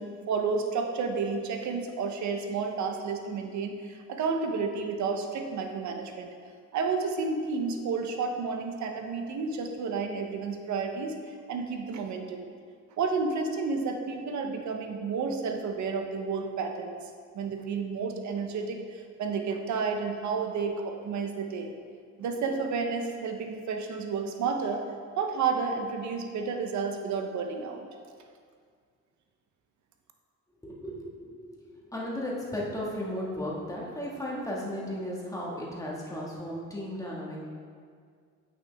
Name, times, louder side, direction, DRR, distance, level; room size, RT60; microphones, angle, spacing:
voice 1, 0.0-6.3 6.7-12.5 13.0-17.0 17.3-21.7 22.2-24.8 25.2-27.9, right 5 dB, 70° right, 4 dB, 0.9 m, -31 dB
voice 2, 30.6-37.4, left 1 dB, 10° left, -5 dB, 1.8 m, -35 dB
8.3 x 6.1 x 3.5 m, 2.1 s
cardioid pair, 90°, 30 cm